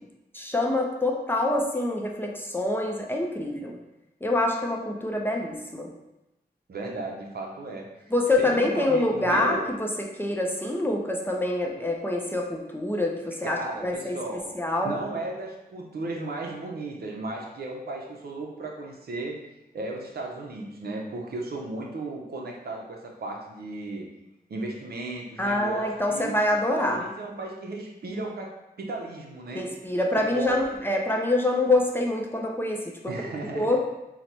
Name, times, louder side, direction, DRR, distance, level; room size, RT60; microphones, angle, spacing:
voice 1, 0.3-3.8 4.2-5.9 8.1-14.2 14.5-14.9 25.4-27.0 29.5-33.1 33.5-33.8, left 1 dB, 15° left, 0 dB, 0.4 m, -26 dB
voice 2, 6.7-9.7 13.4-14.5 14.8-19.4 19.7-24.1 24.5-26.4 26.7-29.7 30.2-30.6 33.1-33.7, right 2 dB, 70° right, 0 dB, 0.7 m, -35 dB
3.9 x 2.1 x 4.4 m, 0.91 s
wide cardioid pair, 140°, 17 cm